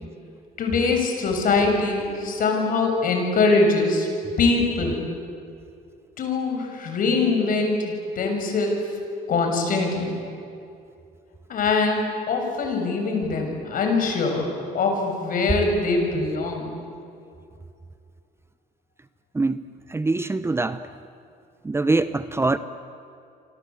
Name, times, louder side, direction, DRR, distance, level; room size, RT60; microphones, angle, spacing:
voice 1, 0.6-4.1 4.4-5.0 6.2-8.8 9.3-10.2 11.5-16.8, left 3 dB, 55° left, 3 dB, 6.6 m, -23 dB
voice 2, 19.3-19.6 19.9-20.8 21.6-22.6, right 3 dB, 15° right, 12 dB, 0.8 m, -23 dB
29.0 x 25.0 x 8.2 m, 2.5 s
cardioid pair, 110°, 17 cm